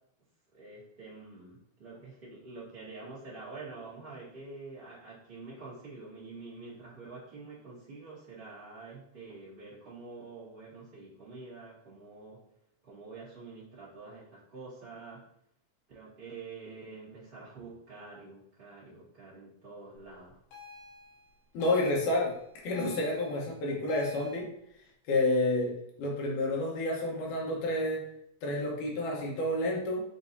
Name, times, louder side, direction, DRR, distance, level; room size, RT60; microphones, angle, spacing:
voice 1, 0.5-12.4 12.9-15.2 15.9-20.4, right 3 dB, 50° right, -12 dB, 0.6 m, -47 dB
sound 1, 20.5-24.4, left 4 dB, 90° left, 3.2 m, -49 dB
voice 2, 21.5-22.3 22.6-24.5 25.1-25.7 26.0-28.0 28.4-30.0, left 2 dB, 70° left, -2 dB, 2.2 m, -29 dB
7.0 x 2.8 x 2.6 m, 0.73 s
omnidirectional pair, 4.3 m